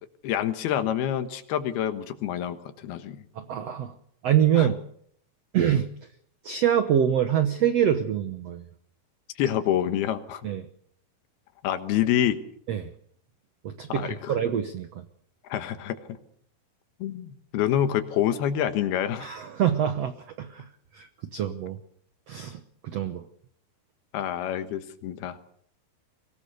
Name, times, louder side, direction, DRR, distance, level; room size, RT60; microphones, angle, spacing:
voice 1, 0.2-3.2 4.6-4.7 9.4-10.4 11.6-12.4 13.9-14.3 15.5-16.0 17.0-19.3 24.1-25.4, left 10 dB, 75° left, 9 dB, 3.2 m, -27 dB
voice 2, 3.3-3.9 4.2-4.8 5.5-5.9 6.4-8.6 10.4-10.7 12.7-12.9 13.6-14.9 19.2-20.6 20.9-21.8 22.3-23.2, right 9 dB, 90° right, 9 dB, 1.4 m, -25 dB
23.5 x 18.0 x 6.8 m, 0.67 s
omnidirectional pair, 4.6 m